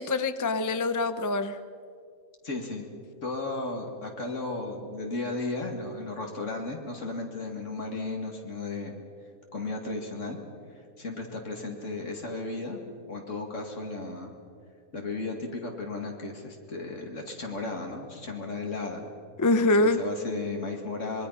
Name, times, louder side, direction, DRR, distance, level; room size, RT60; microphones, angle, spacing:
voice 1, 0.0-1.6 19.4-20.0, left 2 dB, 25° left, 10 dB, 0.4 m, -24 dB
voice 2, 2.4-2.9 3.2-8.9 9.5-10.4 11.0-12.8 13.1-14.3 14.9-19.1 19.8-21.3, left 3 dB, 60° left, 1 dB, 2.5 m, -34 dB
26.0 x 21.5 x 5.7 m, 2.2 s
omnidirectional pair, 1.5 m